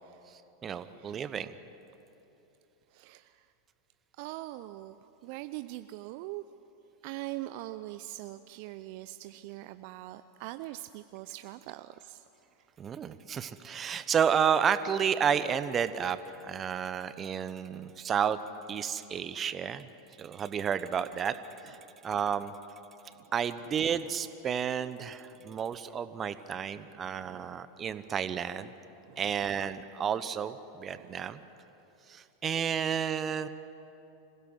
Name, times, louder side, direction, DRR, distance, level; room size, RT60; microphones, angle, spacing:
voice 1, 0.0-0.3 0.8-1.3 2.9-3.4 4.2-5.0 5.2-6.4 7.0-12.2 19.6-19.8 27.1-27.6 29.1-29.2 30.9-31.3, right 17 dB, 55° right, 11 dB, 0.5 m, -42 dB
voice 2, 0.6-1.6 12.8-18.4 18.7-19.9 20.2-21.4 21.6-21.8 22.0-22.5 23.3-28.7 29.2-31.4 32.1-33.5, right 7 dB, 30° right, 13 dB, 1.0 m, -31 dB
26.0 x 16.5 x 8.0 m, 3.0 s
figure-of-eight pair, 90°, 0 cm